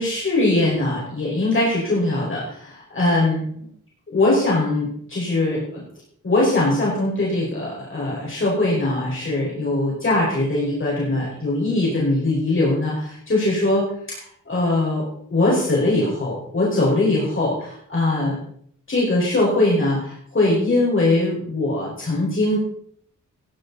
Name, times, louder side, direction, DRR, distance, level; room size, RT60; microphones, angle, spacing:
voice 1, 0.0-3.5 4.1-5.8 6.2-13.9 14.5-18.4 18.9-22.6, left 2 dB, 40° left, -5 dB, 5.3 m, -21 dB
16.5 x 11.0 x 4.1 m, 0.62 s
wide cardioid pair, 115°, 32 cm